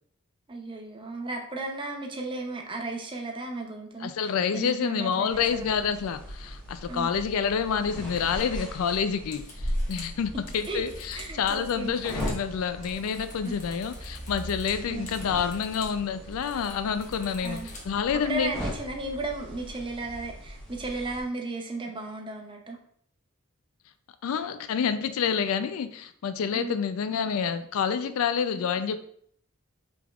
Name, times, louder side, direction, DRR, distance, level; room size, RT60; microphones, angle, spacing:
voice 1, 0.5-5.8 6.9-7.1 10.7-10.9 11.1-11.9 13.4-13.5 14.9-15.1 17.4-17.7 18.2-22.8 26.5-26.7 28.5-28.7, right 2 dB, 20° right, 2 dB, 0.5 m, -35 dB
voice 2, 4.0-18.5 24.2-29.0, left 7 dB, 70° left, 10 dB, 0.3 m, -28 dB
sound 1, 5.3-21.2, equal, 5° left, 1.0 m, -39 dB
sound 2, 7.5-7.6 8.1-12.5 12.7-16.0 16.2-18.1, left 2 dB, 35° left, 0.9 m, -48 dB
sound 3, 10.2-20.3, right 1 dB, 75° right, 0.7 m, -48 dB
5.0 x 3.5 x 2.3 m, 0.64 s
head